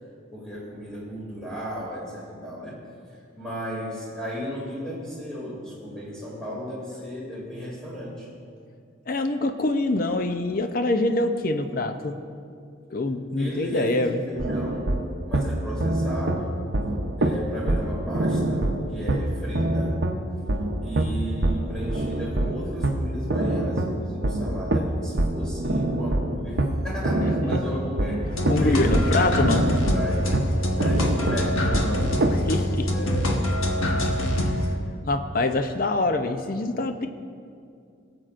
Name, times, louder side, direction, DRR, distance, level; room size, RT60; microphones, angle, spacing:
voice 1, 0.3-2.8 3.4-8.3 13.4-14.9 15.2-16.6 17.2-20.0 20.8-30.5 30.8-32.2 32.9-33.5, equal, 5° left, -6 dB, 2.6 m, -34 dB
voice 2, 9.1-12.2 12.9-14.2 27.2-27.8 28.2-29.6 32.5-32.9 34.1-34.6 35.1-37.1, left 2 dB, 45° left, 7 dB, 0.5 m, -25 dB
sound 1, 14.3-32.4, right 1 dB, 60° right, 0.7 m, -26 dB
sound 2, 28.3-34.7, left 1 dB, 85° left, 1.2 m, -25 dB
22.0 x 7.8 x 2.5 m, 2.4 s
head